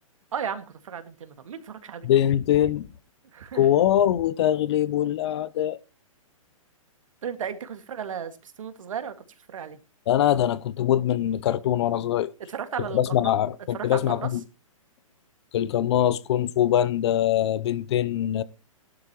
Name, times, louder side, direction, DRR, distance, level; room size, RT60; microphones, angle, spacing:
voice 1, 0.3-2.1 3.3-3.8 7.2-9.1 9.5-9.8 12.5-13.3 13.7-14.3, right 7 dB, 70° right, 2.0 m, -34 dB
voice 2, 2.0-2.9 3.5-5.8 10.1-12.3 12.9-14.4 15.5-18.4, left 11 dB, 50° left, 0.7 m, -23 dB
16.5 x 12.0 x 3.0 m
hypercardioid pair, 130°, 18 cm